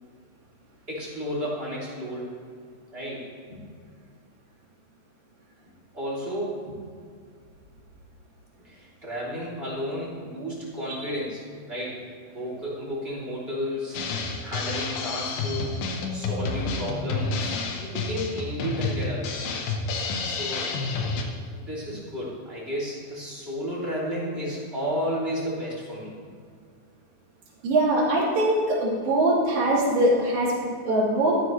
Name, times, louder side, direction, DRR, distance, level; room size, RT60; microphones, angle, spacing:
voice 1, 0.9-2.3 2.9-3.6 5.9-6.8 8.6-12.0 12.3-14.0 14.4-15.8 16.1-17.5 17.8-19.6 20.2-20.7 21.5-26.3, equal, 20° right, -7 dB, 2.8 m, -32 dB
Drum kit, 13.9-21.2, left 4 dB, 90° left, 2.8 m, -30 dB
voice 2, 27.6-31.4, right 1 dB, 75° right, -5 dB, 4.1 m, -22 dB
13.0 x 12.0 x 3.1 m, 2.2 s
omnidirectional pair, 4.0 m